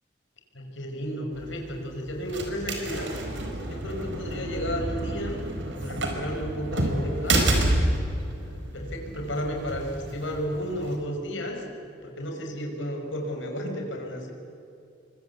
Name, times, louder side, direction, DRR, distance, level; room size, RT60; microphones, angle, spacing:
voice 1, 0.5-3.1 3.6-5.4 5.7-7.5 8.4-11.7 12.0-14.3, equal, 90° left, 2 dB, 5.1 m, -33 dB
sound 1, 1.3-11.0, right 1 dB, 80° right, 4.6 m, -29 dB
29.0 x 24.0 x 8.2 m, 2.6 s
head